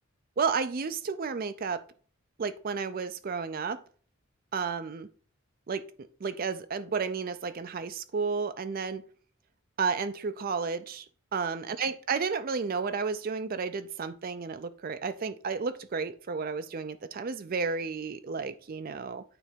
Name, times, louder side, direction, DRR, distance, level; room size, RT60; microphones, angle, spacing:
voice 1, 0.4-1.8 2.4-3.8 4.5-5.1 5.7-5.8 6.2-9.0 9.8-11.1 11.3-19.2, right 5 dB, 40° right, 11 dB, 0.4 m, -32 dB
9.2 x 3.4 x 5.0 m, 0.43 s
head